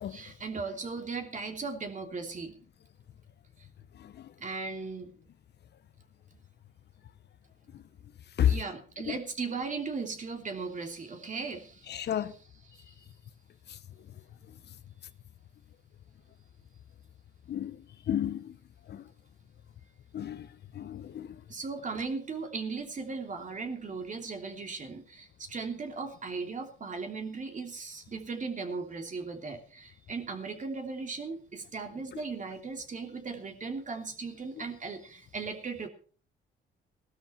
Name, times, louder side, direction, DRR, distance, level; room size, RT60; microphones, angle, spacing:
voice 1, 0.1-2.6 4.4-5.1 8.4-12.1 12.7-12.9 21.5-35.9, right 4 dB, 40° right, 3.1 m, -37 dB
voice 2, 11.9-12.3 17.5-17.8 18.1-18.5 18.9-19.0 20.1-20.5 20.7-21.3, left 10 dB, 60° left, 0.9 m, -30 dB
17.0 x 12.5 x 4.5 m
cardioid pair, 90°, 20 cm